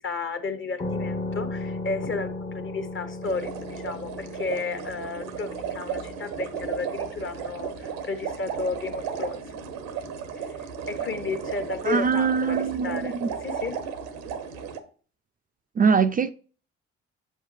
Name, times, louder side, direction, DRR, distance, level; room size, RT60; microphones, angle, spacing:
voice 1, 0.0-9.4 10.3-13.2 13.4-13.8, left 3 dB, 40° left, 1.1 m, -33 dB
sound 1, 0.8-10.0, left 2 dB, 25° left, 0.8 m, -37 dB
sound 2, 3.2-14.8, right 7 dB, 85° right, 0.8 m, -34 dB
voice 2, 11.8-13.3 15.8-16.3, right 5 dB, 30° right, 0.4 m, -22 dB
7.2 x 5.5 x 3.2 m
hypercardioid pair, 55°, 30 cm